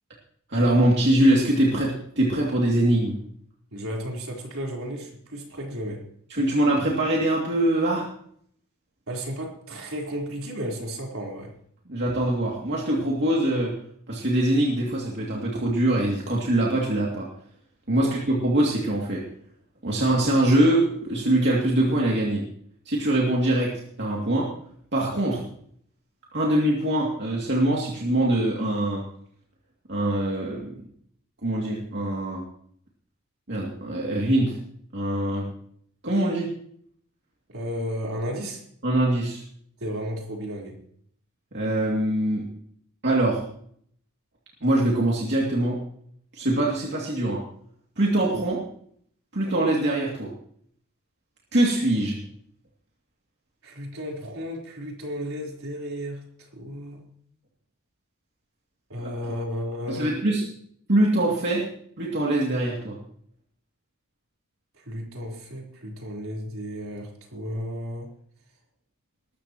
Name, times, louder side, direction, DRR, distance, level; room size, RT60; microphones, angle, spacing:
voice 1, 0.5-3.1 6.3-8.1 11.9-13.7 14.1-17.3 17.9-19.2 19.8-22.4 22.9-23.7 24.0-24.5 24.9-25.4 26.3-29.0 29.9-30.8 31.4-32.4 33.5-34.6 34.9-35.4 36.0-36.5 38.8-39.4 41.5-42.4 43.0-43.4 44.6-45.8 46.3-47.4 48.0-48.6 49.3-50.3 51.5-52.2 59.2-59.3 59.9-60.4 60.9-61.6 62.0-63.0, right 1 dB, 55° right, -3 dB, 2.6 m, -23 dB
voice 2, 3.7-6.1 9.1-11.5 17.9-18.1 37.5-38.6 39.8-40.8 53.6-57.1 58.9-60.2 64.8-68.1, equal, 75° right, -1 dB, 4.0 m, -33 dB
20.5 x 13.0 x 3.0 m, 0.64 s
head